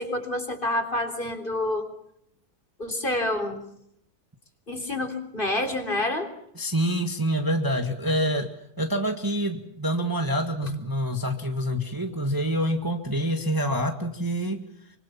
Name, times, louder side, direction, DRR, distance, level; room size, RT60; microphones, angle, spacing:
voice 1, 0.0-1.9 2.8-3.6 4.7-6.3, left 1 dB, 35° left, 8 dB, 3.8 m, -28 dB
voice 2, 6.6-8.5 8.8-14.7, equal, 15° right, 6 dB, 1.9 m, -26 dB
25.5 x 25.0 x 7.1 m, 0.71 s
omnidirectional pair, 1.6 m